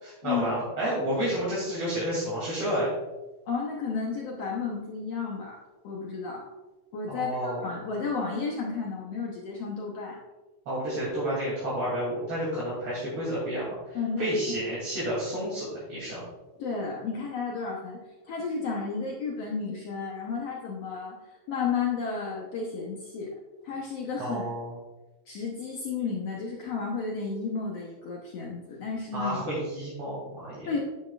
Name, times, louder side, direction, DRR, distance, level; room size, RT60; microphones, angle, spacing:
voice 1, 0.0-2.9 7.1-7.7 10.6-16.2 24.2-24.8 29.1-30.7, equal, 40° right, -8 dB, 3.3 m, -30 dB
voice 2, 3.5-5.6 5.8-6.4 6.9-10.2 13.9-14.3 16.6-18.0 18.3-21.2 21.5-23.3 23.6-24.4 25.3-29.4 30.7-30.8, left 5 dB, 80° left, -2 dB, 1.4 m, -32 dB
9.8 x 9.2 x 2.4 m, 1.1 s
omnidirectional pair, 4.3 m